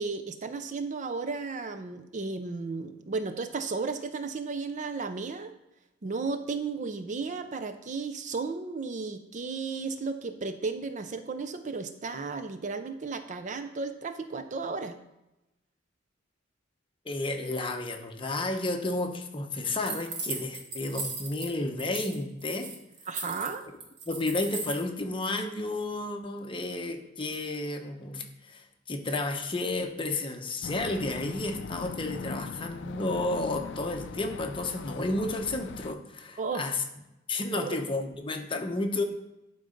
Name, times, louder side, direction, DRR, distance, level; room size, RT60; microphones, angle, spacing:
voice 1, 0.0-5.5 6.0-15.0 23.1-23.6 36.4-36.6 37.5-37.8, right 4 dB, 40° right, 9 dB, 0.5 m, -34 dB
voice 2, 17.0-22.7 24.1-36.8 37.3-39.0, left 2 dB, 25° left, 4 dB, 0.9 m, -32 dB
sound 1, 19.8-21.5 21.8-22.2 22.4-24.8, right 4 dB, 65° right, 1.6 m, -37 dB
sound 2, 30.6-35.9, left 5 dB, 65° left, 0.4 m, -40 dB
11.5 x 3.9 x 5.1 m, 0.93 s
head